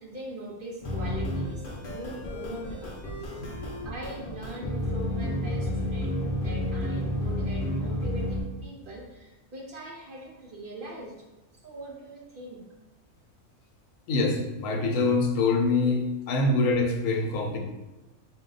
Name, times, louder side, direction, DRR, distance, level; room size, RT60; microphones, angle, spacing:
voice 1, 0.0-3.5 3.8-11.1 11.6-12.6, right 1 dB, 55° right, -2 dB, 0.7 m, -42 dB
sound 1, 0.8-8.4, left 1 dB, 50° left, 0.7 m, -31 dB
voice 2, 14.1-16.0 16.3-17.6, left 3 dB, 85° left, 2 dB, 1.1 m, -24 dB
4.3 x 2.3 x 3.8 m, 1.1 s
omnidirectional pair, 1.3 m